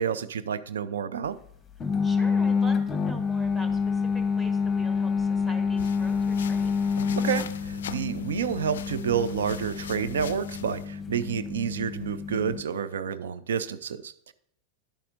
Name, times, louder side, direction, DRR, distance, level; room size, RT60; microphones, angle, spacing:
voice 1, 0.0-1.4 7.1-14.3, right 8 dB, 65° right, 14 dB, 0.5 m, -29 dB
sound 1, 1.8-12.6, left 5 dB, 15° left, 0.9 m, -28 dB
voice 2, 2.0-6.7, right 1 dB, 10° right, 5 dB, 1.3 m, -44 dB
sound 2, 5.8-10.9, left 8 dB, 60° left, 0.3 m, -41 dB
10.5 x 8.4 x 2.6 m, 0.70 s
figure-of-eight pair, 90°, 0 cm